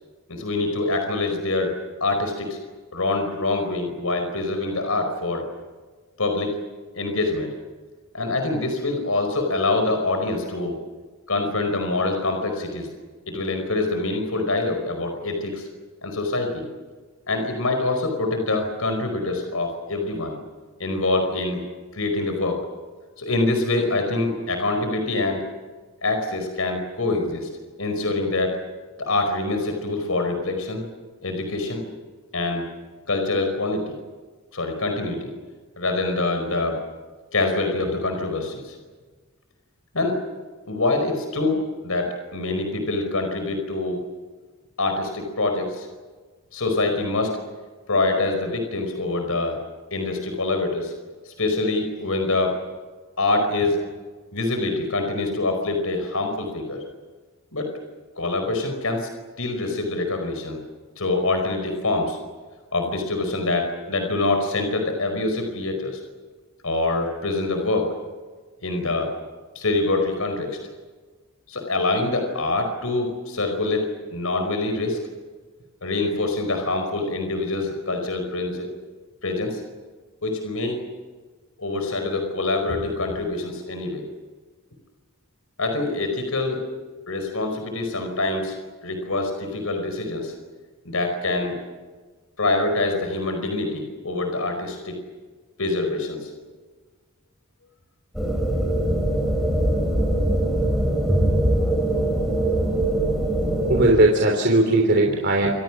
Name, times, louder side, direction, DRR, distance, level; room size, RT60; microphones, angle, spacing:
voice 1, 0.3-1.7 2.0-2.6 2.9-5.4 6.2-6.6 6.9-7.5 8.1-10.8 11.3-12.9 13.3-15.7 16.0-16.6 17.3-20.4 20.8-21.6 21.9-22.6 23.2-25.4 26.0-27.5 27.8-28.6 29.0-30.8 31.2-31.8 32.3-32.7 33.1-33.9 34.5-35.3 35.8-36.8 37.3-38.8 39.9-40.2 40.7-44.0 44.8-45.9 46.5-47.4 47.9-49.6 49.9-50.9 51.2-52.6 53.2-53.8 54.3-56.8 57.5-57.7 58.2-59.1 59.4-60.6 61.0-62.2 62.7-66.0 66.6-67.9 68.6-69.1 69.5-70.6 71.5-75.0 75.8-78.7 79.2-79.6 80.2-80.8 81.6-84.1 85.6-86.6 87.1-88.5 88.8-90.3 90.8-91.6 92.4-95.0 95.6-96.3 98.9-99.2, left 2 dB, 80° left, 5 dB, 4.9 m, -25 dB
sound 1, 98.1-103.9, right 1 dB, ahead, 4.9 m, -22 dB
voice 2, 103.7-105.5, right 2 dB, 50° right, 1 dB, 3.3 m, -18 dB
29.0 x 26.5 x 6.2 m, 1.4 s
head